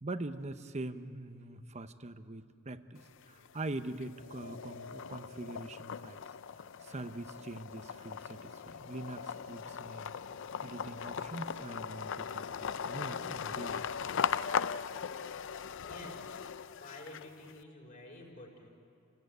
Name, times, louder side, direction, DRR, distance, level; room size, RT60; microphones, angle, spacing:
voice 1, 0.0-6.2 6.8-10.1 10.6-13.9, right 2 dB, 35° right, 11 dB, 0.9 m, -43 dB
sound 1, 3.0-3.6 4.0-17.5, left 7 dB, 65° left, 0.5 m, -39 dB
voice 2, 15.8-16.2 16.7-18.7, left 1 dB, 40° left, 0 dB, 5.2 m, -50 dB
29.0 x 18.0 x 9.4 m, 2.6 s
head